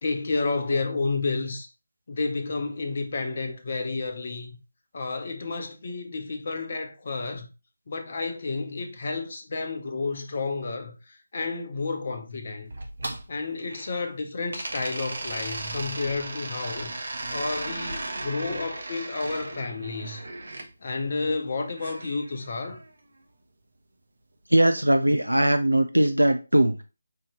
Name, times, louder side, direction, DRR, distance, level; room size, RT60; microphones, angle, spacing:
voice 1, 0.0-1.7 2.1-4.5 4.9-7.5 7.9-10.9 11.3-12.7 13.3-16.9 17.3-20.2 20.8-22.8, left 3 dB, 45° left, 0.8 m, -30 dB
sound 1, 12.7-14.1 14.5-20.7 21.8-22.9, right 2 dB, 55° right, 0.9 m, -36 dB
voice 2, 24.5-26.8, right 1 dB, 85° right, 0.4 m, -20 dB
5.4 x 2.8 x 3.1 m
figure-of-eight pair, 155°, 0 cm